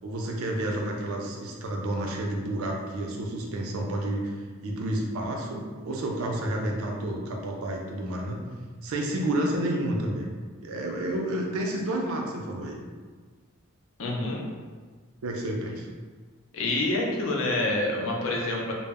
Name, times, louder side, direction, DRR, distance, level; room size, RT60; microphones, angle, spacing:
voice 1, 0.0-8.4 8.8-10.3 10.6-12.8 15.2-15.9, right 1 dB, 80° right, 0 dB, 0.4 m, -30 dB
voice 2, 14.0-14.4 16.5-18.7, left 2 dB, 65° left, -1 dB, 0.5 m, -27 dB
2.1 x 2.0 x 3.4 m, 1.5 s
head